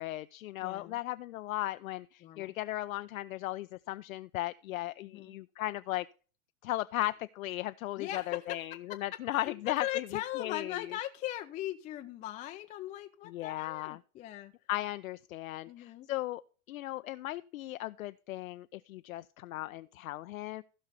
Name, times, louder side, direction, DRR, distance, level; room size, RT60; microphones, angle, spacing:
voice 1, 0.0-6.1 6.6-10.1 10.4-10.9 13.3-14.0 14.7-16.4 16.7-20.6, left 16 dB, 70° left, 0.5 m, -36 dB
voice 2, 0.6-1.0 2.2-2.5 5.0-5.4 8.0-8.6 8.9-9.0 9.3-14.5 15.7-16.1, left 13 dB, 20° left, 0.4 m, -39 dB
15.5 x 5.6 x 4.0 m
hypercardioid pair, 100°, 43 cm